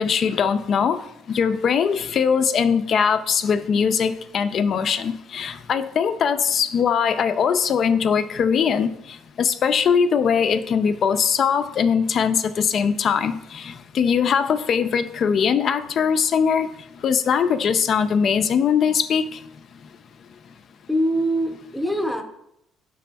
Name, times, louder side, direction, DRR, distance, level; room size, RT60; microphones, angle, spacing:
voice 1, 0.0-8.9 9.4-16.7 17.0-19.4, left 6 dB, 50° left, 10 dB, 0.3 m, -21 dB
voice 2, 20.9-22.2, equal, ahead, 4 dB, 0.6 m, -23 dB
6.0 x 3.3 x 2.2 m, 0.78 s
cardioid pair, 100°, 0 cm